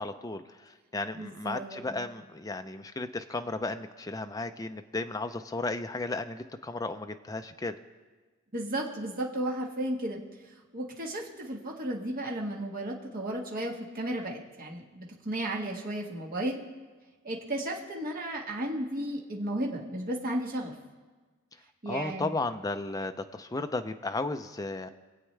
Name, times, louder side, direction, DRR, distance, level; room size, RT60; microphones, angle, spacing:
voice 1, 0.0-7.7 21.9-24.9, left 2 dB, 15° left, 7 dB, 0.5 m, -34 dB
voice 2, 1.2-1.9 8.5-10.2 10.7-16.6 17.2-20.7 21.8-22.3, right 1 dB, 40° right, -1 dB, 1.5 m, -34 dB
24.5 x 8.2 x 3.3 m, 1.4 s
head